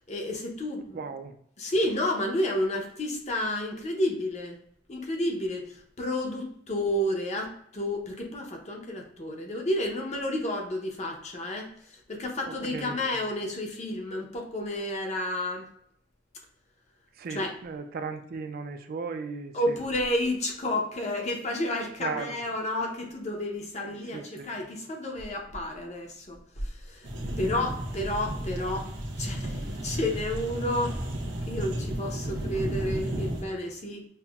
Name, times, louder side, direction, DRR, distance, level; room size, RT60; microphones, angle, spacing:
voice 1, 0.1-1.0 1.6-4.6 4.9-11.7 12.1-15.7 17.3-17.5 19.5-27.1 27.4-28.9 29.2-31.0 31.5-34.1, left 1 dB, 40° left, 2 dB, 0.6 m, -31 dB
voice 2, 0.9-1.3 12.5-13.0 17.2-19.8 22.0-22.4 23.8-24.5 27.2-27.4, right 4 dB, 55° right, 7 dB, 0.3 m, -37 dB
sound 1, 27.0-33.4, right 1 dB, 85° right, 0.7 m, -33 dB
5.5 x 2.0 x 2.3 m, 0.67 s
head